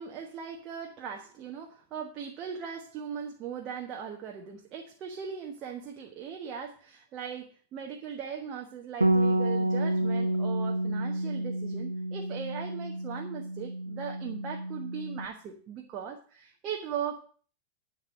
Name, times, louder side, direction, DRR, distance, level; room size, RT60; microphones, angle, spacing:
voice 1, 0.0-17.2, right 7 dB, 35° right, 1 dB, 1.3 m, -39 dB
Bass guitar, 9.0-15.3, right 1 dB, 85° right, 0.7 m, -29 dB
11.0 x 4.8 x 7.4 m, 0.43 s
figure-of-eight pair, 90°, 0 cm